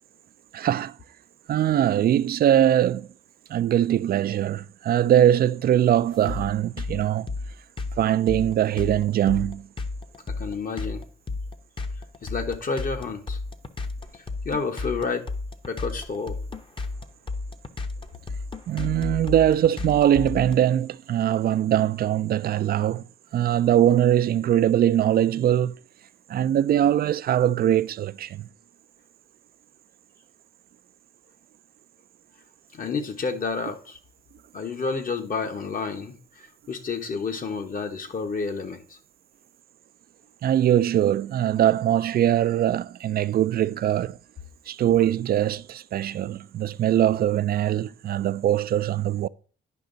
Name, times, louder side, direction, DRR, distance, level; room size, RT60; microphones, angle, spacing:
voice 1, 0.5-1.0 1.5-3.1 3.5-7.3 8.0-9.7 18.7-23.0 23.3-25.8 26.3-28.5 40.4-44.2 44.7-49.3, right 11 dB, 50° right, 0.4 m, -22 dB
sound 1, 6.3-20.6, left 3 dB, 25° left, 0.9 m, -32 dB
voice 2, 10.3-11.0 12.2-13.4 14.4-15.3 15.7-16.4 32.7-34.0 34.5-39.0, left 4 dB, 45° left, 1.2 m, -30 dB
10.5 x 5.3 x 3.9 m
cardioid pair, 90°, 20 cm